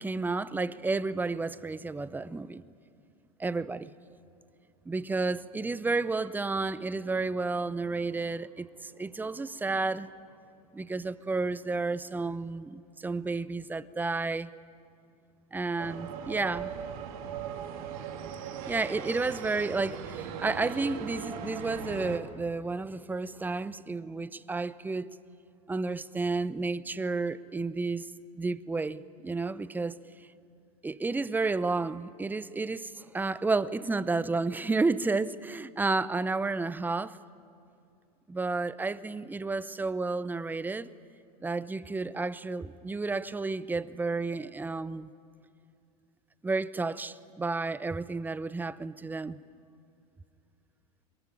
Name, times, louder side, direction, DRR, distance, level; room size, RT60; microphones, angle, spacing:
voice 1, 0.0-2.6 3.4-3.9 4.9-10.1 10.7-14.5 15.5-16.7 18.7-25.1 25.7-28.1 28.4-29.9 30.8-37.2 38.3-40.9 41.4-45.1 46.4-49.4, right 3 dB, 10° right, 0.7 m, -31 dB
sound 1, 15.8-22.2, right 7 dB, 65° right, 2.3 m, -38 dB
22.5 x 22.0 x 9.9 m
hypercardioid pair, 90°, 20 cm